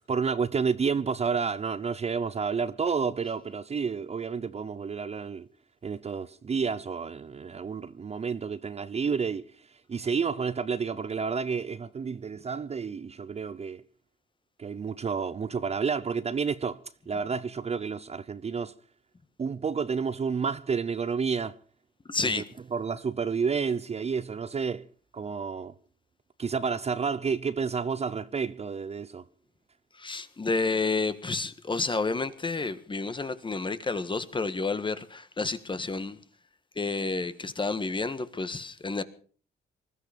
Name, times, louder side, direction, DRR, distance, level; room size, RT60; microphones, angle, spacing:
voice 1, 0.1-5.5 5.8-9.4 9.9-13.8 14.6-16.8 17.1-18.7 19.4-21.6 22.2-22.4 22.7-24.9 25.1-25.7 26.4-29.2, right 5 dB, 30° right, 0.7 m, -30 dB
voice 2, 22.1-22.4 30.0-36.2 36.8-39.0, left 3 dB, 25° left, 1.5 m, -30 dB
20.5 x 13.5 x 5.1 m
cardioid pair, 90°, 20 cm